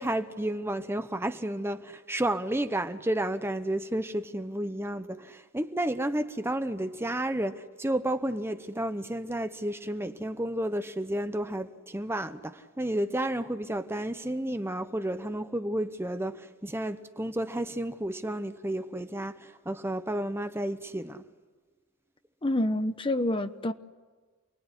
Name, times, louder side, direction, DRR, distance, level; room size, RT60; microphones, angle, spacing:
voice 1, 0.0-21.2, right 1 dB, 10° right, 0.9 m, -31 dB
voice 2, 22.4-23.7, left 1 dB, 25° left, 0.9 m, -27 dB
29.0 x 21.0 x 9.8 m
head